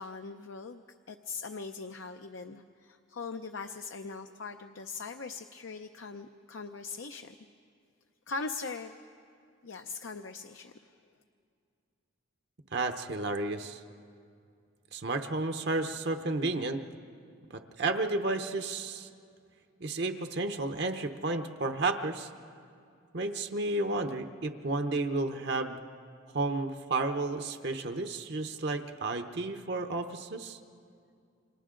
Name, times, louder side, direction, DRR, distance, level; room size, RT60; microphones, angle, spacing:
voice 1, 0.0-7.3 8.3-8.9 9.6-11.0, left 4 dB, 70° left, 7 dB, 0.6 m, -41 dB
voice 2, 12.7-13.8 14.9-16.8 17.5-19.1 19.8-22.3 23.1-25.8 26.3-30.6, right 2 dB, 50° right, 6 dB, 0.8 m, -32 dB
29.5 x 26.5 x 3.8 m, 2.4 s
head